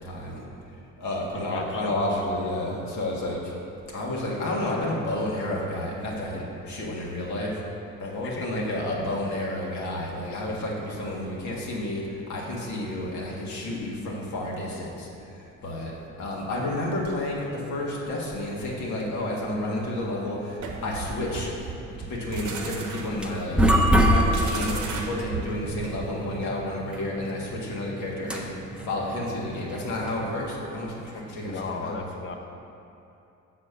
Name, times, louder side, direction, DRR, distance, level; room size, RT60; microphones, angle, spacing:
voice 1, 0.0-0.4 1.0-3.5 3.9-7.6 8.0-15.9 16.2-21.5 22.0-23.6 24.1-28.5 28.8-32.1, left 1 dB, 75° left, -3 dB, 1.6 m, -31 dB
voice 2, 1.5-2.0 8.2-8.6 31.4-32.4, left 4 dB, 45° left, 3 dB, 0.8 m, -35 dB
sound 1, 20.6-26.3, right 4 dB, 85° right, 0.9 m, -36 dB
sound 2, 22.9-30.4, equal, 5° right, 0.6 m, -26 dB
7.5 x 4.2 x 6.5 m, 2.7 s
cardioid pair, 120°, 29 cm